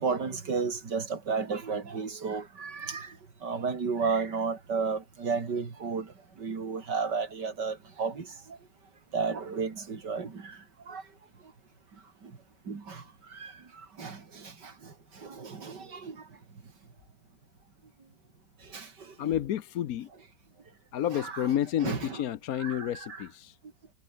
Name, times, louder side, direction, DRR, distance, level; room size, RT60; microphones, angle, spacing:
voice 1, 0.0-3.1 3.4-6.1 6.4-8.3 9.1-10.6 10.9-11.0 12.7-13.0 13.3-13.5 14.0-14.9 15.2-16.2 18.7-18.9 19.2-19.3 21.1-21.5 21.8-22.2 22.6-23.2, right 5 dB, 80° right, 3.4 m, -33 dB
voice 2, 19.2-20.1 20.9-23.6, left 11 dB, 65° left, 1.2 m, -30 dB
omnidirectional pair, 1.8 m